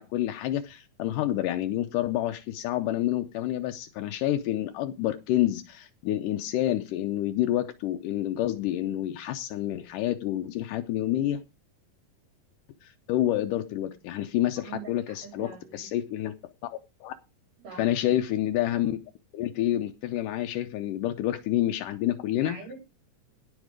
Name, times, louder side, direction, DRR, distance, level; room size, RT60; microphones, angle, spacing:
voice 1, 0.0-11.4 12.8-16.3 16.6-16.7 17.0-17.1 17.8-19.0 19.3-22.6, left 13 dB, 80° left, 2.3 m, -28 dB
voice 2, 14.6-15.9 17.6-17.9 22.3-22.8, right 5 dB, 75° right, 5.4 m, -44 dB
17.0 x 6.0 x 5.0 m
omnidirectional pair, 3.8 m